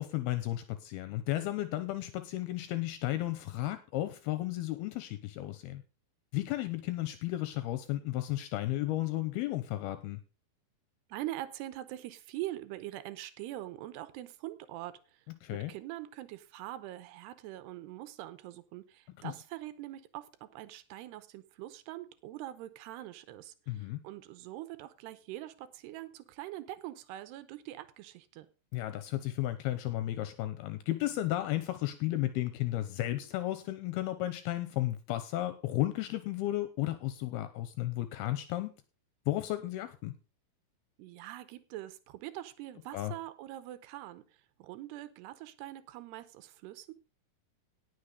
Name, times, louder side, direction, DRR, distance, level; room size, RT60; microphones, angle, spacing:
voice 1, 0.0-5.8 6.3-10.2 15.4-15.7 23.7-24.0 28.7-38.7 39.3-40.1 42.9-43.1, left 15 dB, 80° left, 12 dB, 2.7 m, -33 dB
voice 2, 11.1-15.2 15.5-28.5 41.0-44.2 44.6-46.9, right 15 dB, 85° right, 13 dB, 3.0 m, -43 dB
18.0 x 6.4 x 5.1 m, 0.34 s
omnidirectional pair, 4.7 m